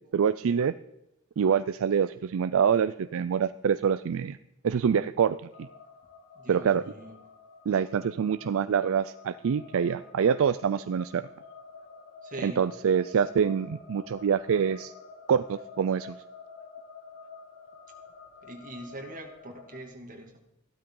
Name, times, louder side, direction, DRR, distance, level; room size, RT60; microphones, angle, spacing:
voice 1, 0.1-0.7 1.4-4.4 4.6-5.7 6.5-6.8 7.7-11.3 12.4-14.9 15.3-16.2, right 7 dB, 65° right, 14 dB, 0.4 m, -25 dB
sound 1, 5.5-19.8, left 5 dB, 45° left, 2.0 m, -49 dB
voice 2, 6.3-7.2 12.2-12.7 18.4-20.4, right 1 dB, 40° right, 2 dB, 2.5 m, -42 dB
15.5 x 12.5 x 3.9 m, 0.88 s
head